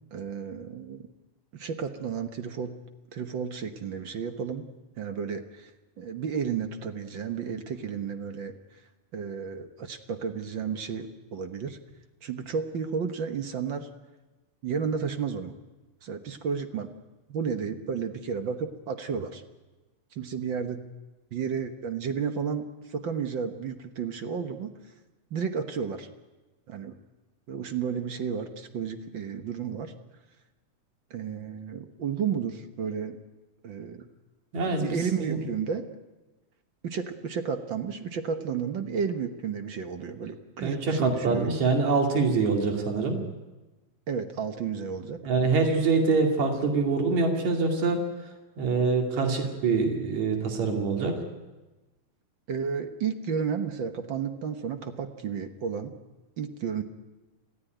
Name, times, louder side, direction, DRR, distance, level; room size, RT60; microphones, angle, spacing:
voice 1, 0.1-1.1 1.5-2.8 3.1-4.7 5.0-5.7 6.0-8.5 9.1-11.8 12.2-13.9 14.6-15.5 16.0-16.9 17.3-19.4 20.1-20.8 21.3-24.7 25.3-26.1 26.7-27.0 27.5-29.9 31.1-33.2 33.6-34.1 34.8-35.9 36.8-41.5 44.1-45.2 52.5-55.9 56.4-56.8, right 6 dB, 50° right, 7 dB, 1.5 m, -32 dB
voice 2, 34.5-35.4 40.6-43.2 45.2-48.1 48.6-51.2, right 4 dB, 70° right, 2 dB, 3.9 m, -25 dB
26.5 x 15.5 x 9.2 m, 1.1 s
omnidirectional pair, 3.4 m